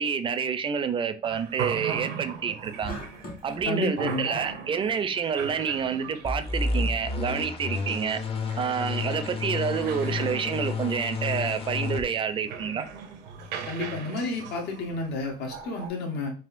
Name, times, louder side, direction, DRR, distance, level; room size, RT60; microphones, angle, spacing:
voice 1, 0.0-3.0 3.4-8.2 8.6-12.8, right 6 dB, 30° right, 0.4 m, -28 dB
sound 1, 1.2-15.9, right 7 dB, 80° right, 0.6 m, -40 dB
sound 2, 2.8-3.7, equal, 60° left, 1.6 m, -39 dB
voice 2, 3.6-4.3 13.7-16.3, left 2 dB, 75° left, 0.9 m, -31 dB
sound 3, 6.2-12.0, left 4 dB, 35° left, 0.5 m, -31 dB
3.5 x 2.5 x 2.4 m
cardioid pair, 110°, 17 cm